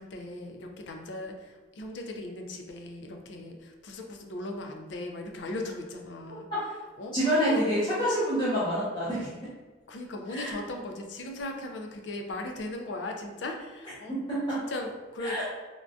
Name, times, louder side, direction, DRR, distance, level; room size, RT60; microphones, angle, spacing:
voice 1, 0.0-6.5 7.0-7.1 7.5-7.6 9.9-14.2 14.6-15.4, left 2 dB, 75° left, 3 dB, 0.4 m, -38 dB
voice 2, 7.1-9.3 10.3-10.6 14.1-14.6 15.2-15.5, equal, 25° left, -10 dB, 0.7 m, -27 dB
3.6 x 2.3 x 2.5 m, 1.3 s
head